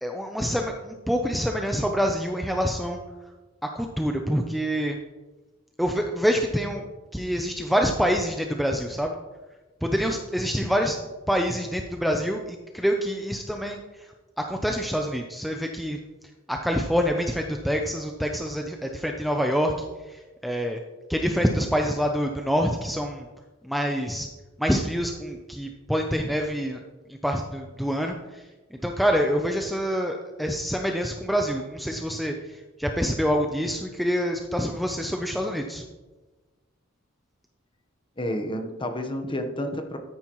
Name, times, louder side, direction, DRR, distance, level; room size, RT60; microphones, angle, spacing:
voice 1, 0.0-3.0 3.6-5.0 5.8-6.9 7.1-9.2 9.8-11.0 11.3-16.0 16.5-20.8 21.1-23.3 23.6-24.3 24.6-26.8 27.1-35.8, equal, ahead, 2 dB, 0.5 m, -26 dB
voice 2, 38.2-40.0, left 1 dB, 25° left, 6 dB, 1.0 m, -30 dB
13.5 x 9.4 x 3.1 m, 1.2 s
head